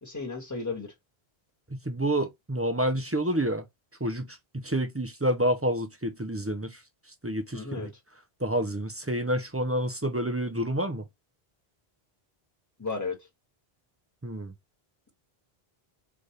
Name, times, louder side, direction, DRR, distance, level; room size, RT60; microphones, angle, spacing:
voice 1, 0.0-0.9 7.5-7.9 12.8-13.3, left 3 dB, 15° left, 1.5 m, -34 dB
voice 2, 1.7-3.6 4.0-6.8 7.2-7.9 8.4-11.0 14.2-14.5, right 1 dB, 15° right, 0.6 m, -29 dB
4.1 x 3.4 x 3.2 m
omnidirectional pair, 1.0 m